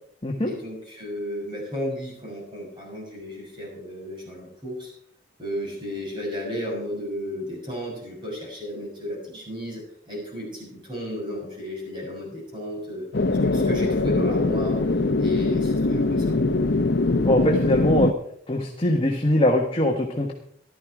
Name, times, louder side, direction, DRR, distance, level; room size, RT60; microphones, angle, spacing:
voice 1, 0.4-4.9 5.4-13.1 13.4-14.8 15.2-16.4, left 1 dB, 25° right, -2 dB, 7.0 m, -33 dB
sound 1, 13.1-18.1, left 2 dB, 65° left, 0.7 m, -22 dB
voice 2, 17.2-18.1 18.5-20.3, left 1 dB, 30° left, 1 dB, 1.4 m, -22 dB
15.0 x 12.0 x 4.9 m, 0.67 s
head